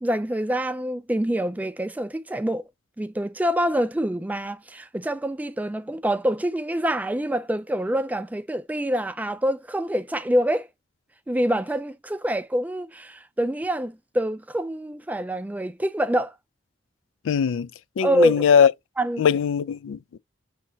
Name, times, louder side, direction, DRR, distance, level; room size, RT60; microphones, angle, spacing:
voice 1, 0.0-2.6 3.0-10.7 11.3-16.3 18.0-18.5 19.0-19.2, equal, 10° right, 0.3 m, -26 dB
voice 2, 17.2-17.7 18.0-18.7 19.2-20.2, left 7 dB, 85° left, 0.3 m, -20 dB
6.1 x 2.8 x 2.7 m
head